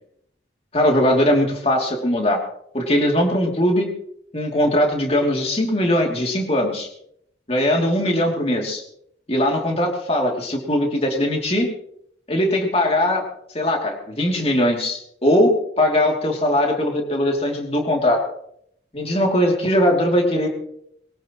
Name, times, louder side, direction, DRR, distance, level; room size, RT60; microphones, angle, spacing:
voice 1, 0.7-2.4 2.7-3.9 4.3-6.9 7.5-8.8 9.3-11.7 12.3-13.2 13.5-15.5 15.8-18.2 18.9-20.5, left 1 dB, 35° left, 1 dB, 2.9 m, -20 dB
22.5 x 18.5 x 3.1 m, 0.72 s
head